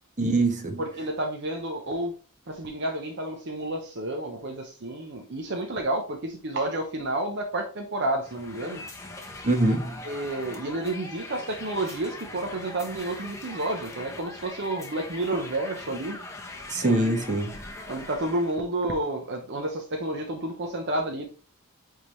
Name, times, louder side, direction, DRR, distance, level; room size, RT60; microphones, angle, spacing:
voice 1, 0.2-0.8 9.4-10.0 16.7-17.7, right 2 dB, 35° right, 1.3 m, -24 dB
voice 2, 0.8-2.1 2.5-8.8 9.6-9.8 10.0-16.2 16.8-17.1 17.9-21.3, right 1 dB, 55° right, 0.9 m, -30 dB
sound 1, 8.2-18.6, left 2 dB, 15° left, 1.0 m, -41 dB
8.7 x 3.7 x 3.1 m
head